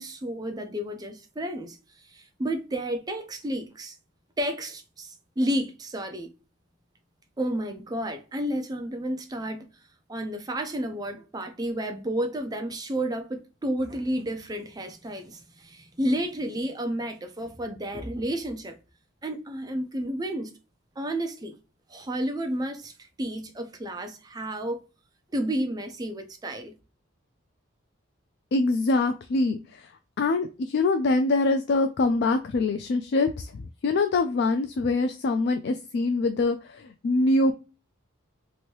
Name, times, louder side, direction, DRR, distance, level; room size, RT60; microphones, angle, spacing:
voice 1, 0.0-1.8 2.1-4.0 4.4-6.3 7.4-9.7 10.1-18.8 19.2-20.5 21.0-21.6 21.9-24.8 25.3-26.7, right 1 dB, 20° right, 0.4 m, -31 dB
voice 2, 28.5-29.9 30.2-37.5, left 3 dB, 55° left, 0.3 m, -24 dB
2.9 x 2.6 x 3.0 m
head